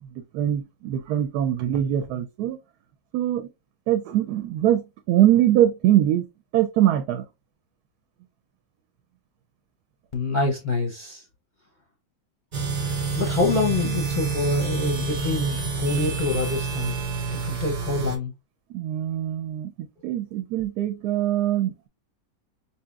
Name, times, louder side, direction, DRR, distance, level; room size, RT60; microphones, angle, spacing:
voice 1, 0.1-2.6 3.1-3.5 3.9-6.3 6.5-7.2 18.7-21.9, right 12 dB, 75° right, 1.1 m, -23 dB
voice 2, 10.1-11.2 13.1-17.0 17.3-18.3, left 3 dB, 45° left, 0.6 m, -26 dB
sound 1, 12.5-18.2, right 4 dB, 45° right, 0.6 m, -28 dB
4.8 x 2.8 x 2.3 m
omnidirectional pair, 1.8 m